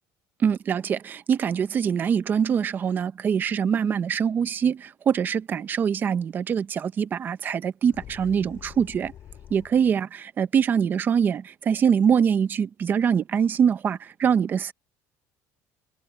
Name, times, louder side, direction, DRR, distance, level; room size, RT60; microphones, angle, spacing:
voice 1, 0.4-9.1 9.5-14.7, right 7 dB, 30° right, 0.8 m, -24 dB
sound 1, 7.8-10.0, left 10 dB, 40° left, 7.4 m, -46 dB
cardioid pair, 165°, 7 cm